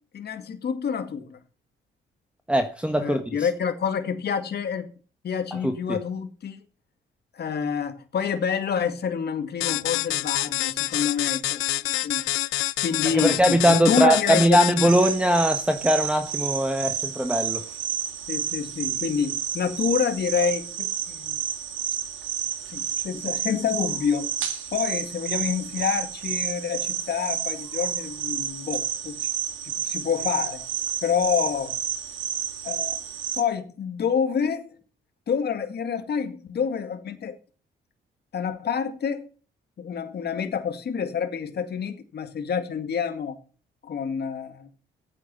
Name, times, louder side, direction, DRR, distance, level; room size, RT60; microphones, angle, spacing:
voice 1, 0.1-1.4 3.0-4.9 5.2-6.6 7.3-12.2 12.8-14.6 18.3-21.4 22.7-24.3 24.7-29.3 29.9-30.6 31.0-31.8 32.6-33.0 33.4-34.7 35.3-37.4 38.3-39.3 39.8-43.4 43.8-44.7, left 7 dB, 55° left, 2.2 m, -27 dB
voice 2, 2.5-3.5 5.5-6.0 13.0-17.6, right 1 dB, 5° right, 1.2 m, -21 dB
sound 1, 9.6-15.2, left 16 dB, 80° left, 0.5 m, -27 dB
sound 2, 14.9-33.4, right 9 dB, 80° right, 2.1 m, -30 dB
14.5 x 8.9 x 5.6 m
cardioid pair, 90°, 20 cm